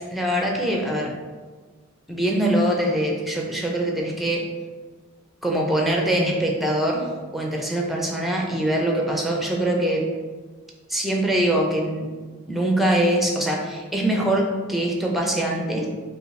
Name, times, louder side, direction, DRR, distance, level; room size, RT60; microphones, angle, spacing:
voice 1, 0.1-1.1 2.1-4.4 5.4-7.1 7.3-10.0 10.9-12.1 12.5-15.9, right 1 dB, ahead, -1 dB, 0.5 m, -23 dB
5.1 x 2.3 x 3.2 m, 1.4 s
head